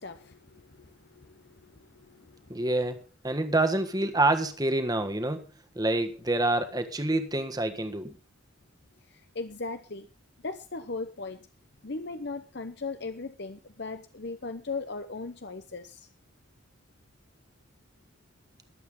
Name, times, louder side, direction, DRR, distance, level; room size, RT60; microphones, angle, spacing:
voice 1, 0.0-2.7 9.1-10.1 10.4-11.5 11.8-16.1, left 3 dB, 55° left, 0.9 m, -38 dB
voice 2, 2.5-5.5 5.7-8.2, right 2 dB, 20° right, 1.5 m, -27 dB
22.5 x 8.2 x 3.8 m
head